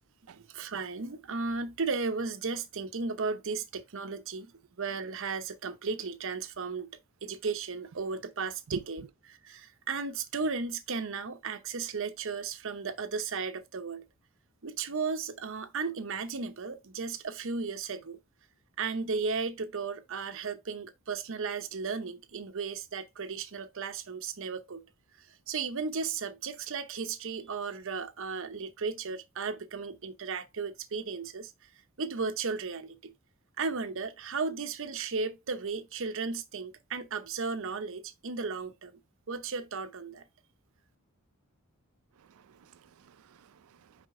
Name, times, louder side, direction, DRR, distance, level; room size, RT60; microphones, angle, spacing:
voice 1, 0.4-4.5 4.8-6.9 7.2-9.0 9.3-14.0 14.6-18.2 18.8-24.8 25.5-31.5 32.0-33.1 33.6-38.9 39.3-40.2, right 4 dB, 65° right, 0.8 m, -35 dB
voice 2, 42.2-44.1, right 6 dB, 85° right, 0.4 m, -45 dB
5.2 x 5.1 x 3.6 m
head